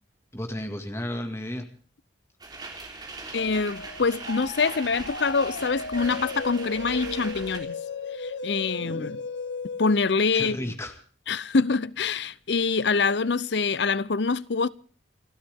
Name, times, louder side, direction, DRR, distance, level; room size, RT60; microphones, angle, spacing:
voice 1, 0.3-1.7 8.8-9.2 10.3-11.0, left 1 dB, 15° left, 2.0 m, -33 dB
sound 1, 2.4-7.6, right 3 dB, 25° right, 3.5 m, -40 dB
voice 2, 3.3-7.8 8.2-9.2 9.8-10.6 11.3-14.7, left 4 dB, 70° left, 0.7 m, -25 dB
sound 2, 3.4-10.0, left 3 dB, 85° left, 1.3 m, -35 dB
29.0 x 13.0 x 3.6 m
head